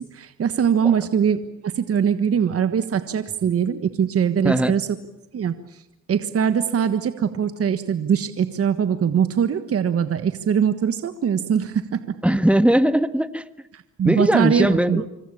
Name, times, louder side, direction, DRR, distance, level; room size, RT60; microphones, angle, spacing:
voice 1, 0.0-4.9 5.3-5.8 6.1-12.2 13.7-15.1, right 7 dB, 50° right, 10 dB, 1.5 m, -22 dB
voice 2, 12.2-13.4 14.0-15.0, right 1 dB, 5° right, 12 dB, 1.5 m, -19 dB
26.0 x 25.0 x 8.6 m, 0.84 s
cardioid pair, 90°, 30 cm